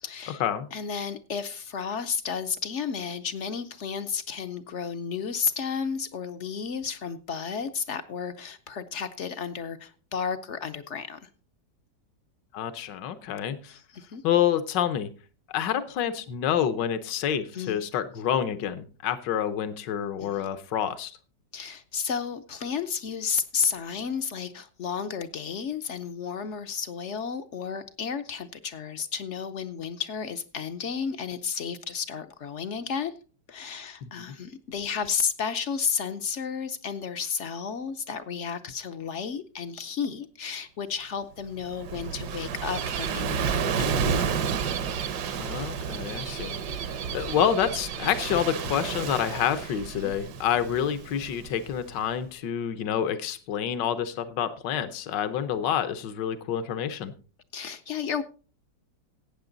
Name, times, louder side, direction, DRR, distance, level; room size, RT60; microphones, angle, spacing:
voice 1, 0.0-0.4 0.7-11.3 13.7-14.2 17.5-17.8 20.2-20.4 21.5-33.1 33.5-44.2 50.0-50.1 57.5-58.2, left 6 dB, 60° left, 0.8 m, -32 dB
voice 2, 12.5-13.7 14.2-15.1 15.5-21.1 34.0-34.1 45.4-46.6 46.8-57.1, left 9 dB, 75° left, 1.6 m, -28 dB
Gull seagull / Waves surf, 41.5-52.0, right 6 dB, 70° right, 1.4 m, -31 dB
15.0 x 8.7 x 3.9 m
omnidirectional pair, 1.9 m